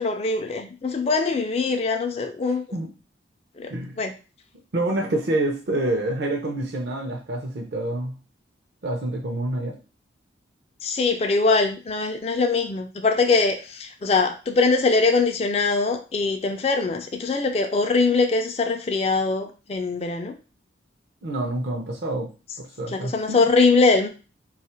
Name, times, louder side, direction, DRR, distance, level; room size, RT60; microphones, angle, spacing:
voice 1, 0.0-2.7 3.6-3.7 4.0-4.1 10.8-20.4 22.9-24.1, left 3 dB, 30° left, 0.3 m, -22 dB
voice 2, 3.7-4.0 4.7-8.2 8.8-9.8 21.2-22.3 22.6-23.1, right 1 dB, 60° right, 0.6 m, -27 dB
3.2 x 2.4 x 4.2 m
head